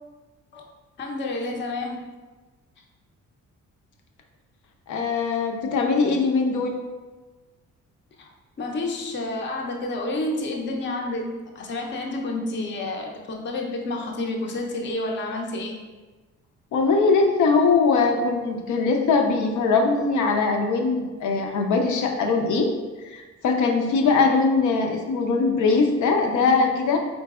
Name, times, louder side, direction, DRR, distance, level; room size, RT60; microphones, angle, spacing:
voice 1, 1.0-2.1 8.2-8.3 8.6-15.8 20.3-20.4 26.2-26.5, left 2 dB, 40° left, 1 dB, 0.6 m, -30 dB
voice 2, 4.9-6.8 16.7-22.7 23.0-27.0, left 4 dB, 75° left, 3 dB, 0.7 m, -21 dB
3.9 x 3.9 x 2.3 m, 1.3 s
cardioid pair, 90°, 30 cm